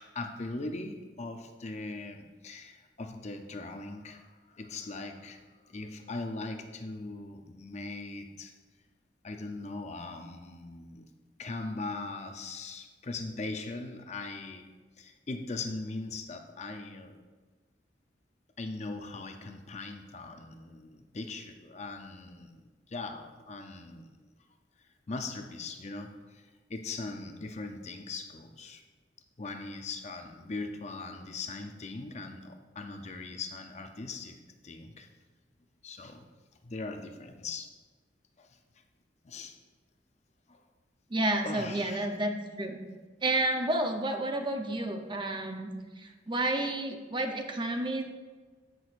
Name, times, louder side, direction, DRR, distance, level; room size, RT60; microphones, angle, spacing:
voice 1, 0.0-5.4 5.7-8.5 9.2-11.1 11.4-14.7 15.0-17.2 18.6-22.5 22.9-24.3 25.1-28.8 29.4-35.1 35.8-36.2 36.6-37.7 38.4-38.5 39.2-39.6 40.5-40.6 41.4-42.1, left 3 dB, 40° left, 5 dB, 0.6 m, -40 dB
voice 2, 41.1-42.8 43.2-45.7 46.0-48.0, right 2 dB, 25° right, 4 dB, 0.7 m, -30 dB
14.0 x 6.2 x 2.5 m, 1.4 s
head